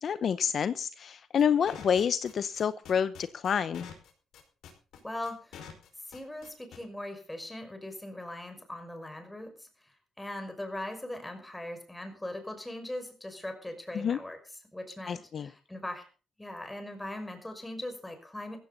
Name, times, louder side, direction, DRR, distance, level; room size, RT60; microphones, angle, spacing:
voice 1, 0.0-3.9 13.9-14.2 15.1-15.5, left 7 dB, 55° left, 13 dB, 0.8 m, -28 dB
sound 1, 1.4-6.8, left 8 dB, 75° left, 5.1 m, -47 dB
voice 2, 5.0-5.6 6.0-14.4 14.7-16.1 16.4-18.6, left 1 dB, 10° left, 6 dB, 5.6 m, -40 dB
15.5 x 15.5 x 4.0 m, 0.35 s
cardioid pair, 90°, 0 cm